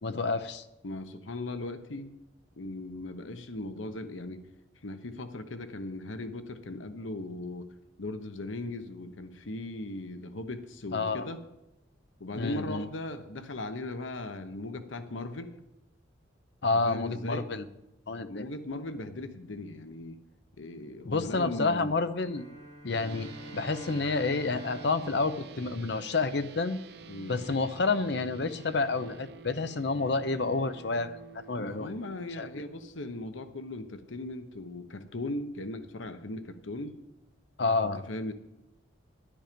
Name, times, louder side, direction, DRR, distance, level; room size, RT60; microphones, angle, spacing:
voice 1, 0.0-0.6 10.9-11.3 12.3-12.9 16.6-17.7 18.1-18.5 21.0-22.5 22.8-26.8 27.3-31.2 31.5-31.9 32.4-32.5 37.6-38.0, left 3 dB, 60° left, 11 dB, 0.7 m, -29 dB
voice 2, 0.8-2.1 2.6-4.4 4.8-7.7 8.0-11.4 12.2-15.5 16.7-17.5 18.3-20.2 20.6-22.0 27.1-27.4 31.5-37.0 38.1-38.3, left 2 dB, 80° left, 9 dB, 1.0 m, -38 dB
sound 1, 22.1-26.6, equal, 35° left, 2.8 m, -46 dB
sound 2, 22.9-32.9, right 5 dB, 55° right, 0.7 m, -49 dB
10.5 x 10.5 x 5.2 m, 0.93 s
head